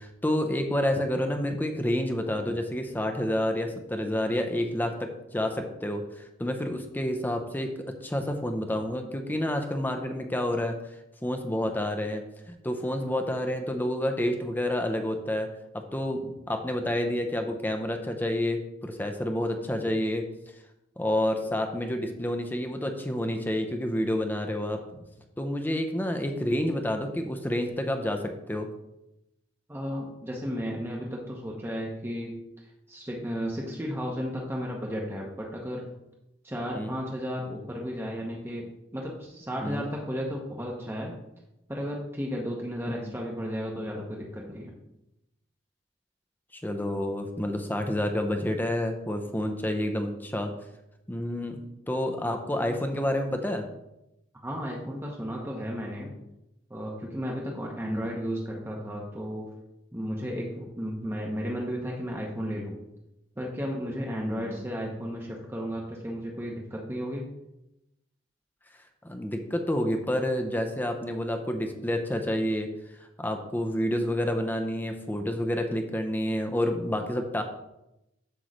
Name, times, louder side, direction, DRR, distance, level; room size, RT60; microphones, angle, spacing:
voice 1, 0.0-7.7 8.0-10.8 11.2-15.5 15.7-20.2 21.0-24.8 25.4-28.7 36.7-36.9 39.6-39.8 43.0-43.1 46.5-50.5 51.1-53.7 57.9-58.1 64.1-64.7 69.0-72.7 73.2-77.4, left 1 dB, 10° left, 5 dB, 0.6 m, -29 dB
voice 2, 29.7-32.3 32.9-35.9 36.4-41.1 41.7-44.7 54.4-56.1 56.7-59.5 59.9-62.8 63.4-67.3, equal, 10° right, -2 dB, 0.9 m, -34 dB
8.0 x 3.1 x 6.3 m, 0.89 s
head